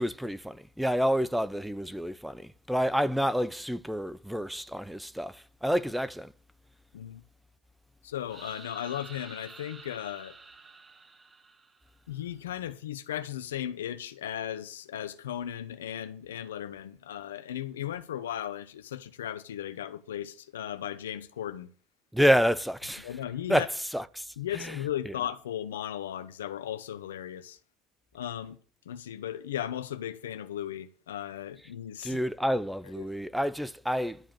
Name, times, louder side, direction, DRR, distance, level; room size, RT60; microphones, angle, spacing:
voice 1, 0.0-6.3 22.1-23.1 23.5-24.3 24.5-24.8 25.1-25.2 32.0-34.2, equal, 5° right, 0.8 m, -28 dB
voice 2, 8.0-10.4 12.1-21.7 23.0-23.7 24.4-27.6 28.1-28.6 28.9-32.2 32.5-32.6 33.0-33.1, left 11 dB, 85° left, 0.9 m, -36 dB
sound 1, 8.3-12.1, right 4 dB, 25° right, 1.4 m, -49 dB
13.0 x 4.9 x 8.8 m
hypercardioid pair, 70°, 0 cm